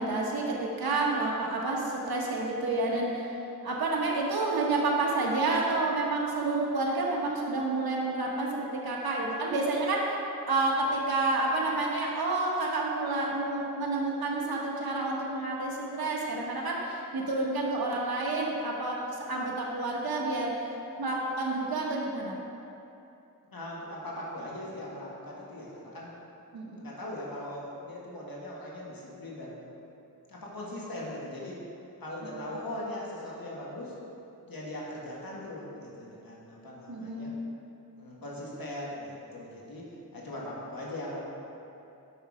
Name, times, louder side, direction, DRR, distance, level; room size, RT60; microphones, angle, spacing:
voice 1, 0.0-3.4 3.6-10.2 10.5-20.5 21.0-22.4 26.5-26.8 36.9-37.4, right 2 dB, 85° right, -2 dB, 1.2 m, -29 dB
voice 2, 23.5-26.1 26.7-29.7 30.3-31.6 32.0-34.0 34.5-37.3 38.0-39.8 40.1-41.2, left 1 dB, 70° left, -4 dB, 1.8 m, -40 dB
7.9 x 6.0 x 4.8 m, 2.8 s
cardioid pair, 50°, 36 cm